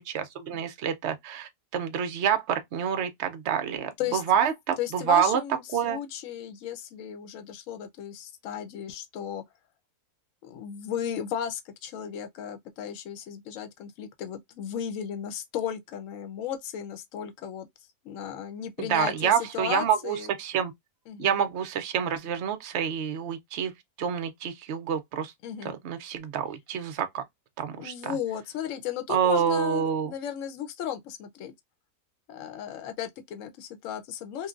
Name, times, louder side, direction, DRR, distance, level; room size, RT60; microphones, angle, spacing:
voice 1, 0.0-5.4 5.7-6.0 18.8-20.7 21.2-23.7 24.0-25.3 25.8-27.2 27.6-28.2 29.1-30.1, right 8 dB, 60° right, 0.7 m, -27 dB
voice 2, 4.8-9.4 10.4-17.7 18.0-20.3 21.1-21.4 25.4-25.8 27.8-31.5 32.3-34.5, left 9 dB, 65° left, 0.9 m, -35 dB
3.1 x 2.2 x 2.4 m
omnidirectional pair, 1.7 m